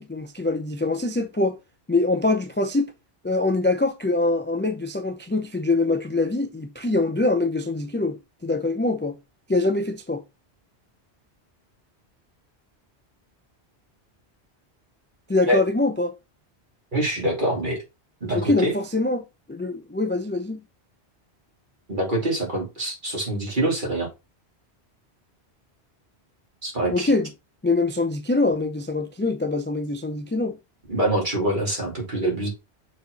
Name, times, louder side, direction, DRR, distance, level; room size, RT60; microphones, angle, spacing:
voice 1, 0.0-1.6 1.9-2.9 3.2-9.2 9.5-10.2 15.3-16.1 18.3-20.6 26.9-27.3 27.6-30.6, left 2 dB, 15° left, 0.4 m, -24 dB
voice 2, 16.9-17.8 18.2-18.7 21.9-24.1 26.6-27.1 30.9-32.5, right 1 dB, 45° right, 3.1 m, -25 dB
6.6 x 4.3 x 4.0 m
omnidirectional pair, 1.1 m